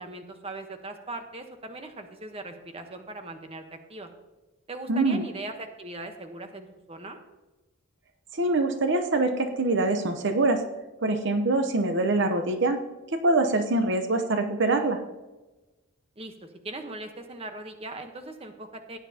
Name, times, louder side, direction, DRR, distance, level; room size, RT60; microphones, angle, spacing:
voice 1, 0.0-4.1 4.7-7.2 16.2-19.0, right 2 dB, 30° right, 5 dB, 1.1 m, -39 dB
voice 2, 4.9-5.2 8.3-10.6 11.0-12.8 13.1-15.0, right 2 dB, 60° right, 6 dB, 0.8 m, -24 dB
16.5 x 9.8 x 2.9 m, 1.1 s
head